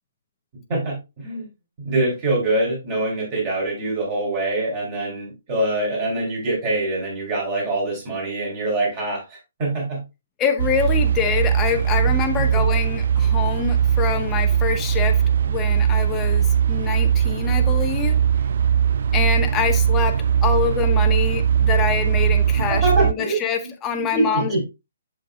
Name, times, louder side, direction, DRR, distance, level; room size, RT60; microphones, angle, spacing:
voice 1, 0.7-1.5 1.8-10.0 12.1-12.6 22.7-23.4 24.1-24.6, right 2 dB, 30° right, 4.0 m, -24 dB
voice 2, 10.4-18.2 19.1-24.6, left 7 dB, 15° left, 0.8 m, -25 dB
sound 1, 10.6-23.1, right 8 dB, 60° right, 0.4 m, -20 dB
7.5 x 6.6 x 2.4 m
hypercardioid pair, 160°, 0 cm